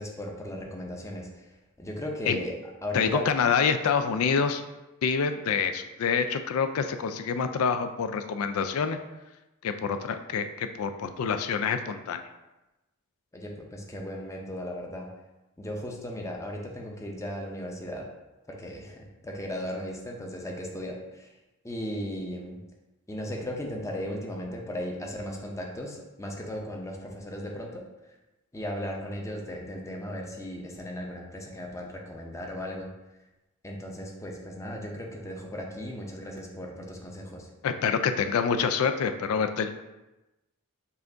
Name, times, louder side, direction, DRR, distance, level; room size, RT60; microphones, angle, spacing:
voice 1, 0.0-2.5 2.8-3.3 13.3-15.1 15.6-18.1 18.5-21.3 21.6-22.6 23.1-27.9 28.5-32.9 33.6-37.5, left 1 dB, 15° left, 0 dB, 0.6 m, -36 dB
voice 2, 2.9-4.6 5.0-9.0 9.6-12.2 37.6-39.7, left 6 dB, 70° left, 8 dB, 0.3 m, -26 dB
5.6 x 2.5 x 3.8 m, 1.0 s
head